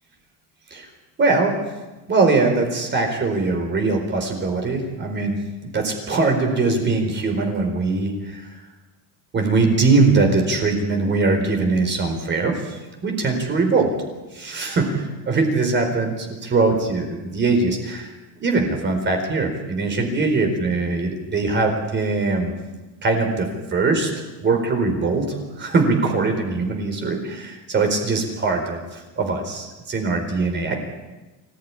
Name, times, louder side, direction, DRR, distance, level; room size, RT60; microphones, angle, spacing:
voice 1, 1.2-1.6 2.1-5.4 5.6-8.5 9.3-13.9 14.3-18.1 18.4-22.5 23.0-30.7, right 3 dB, 25° right, 4 dB, 4.4 m, -21 dB
25.0 x 16.5 x 9.8 m, 1.2 s
cardioid pair, 160°, 41 cm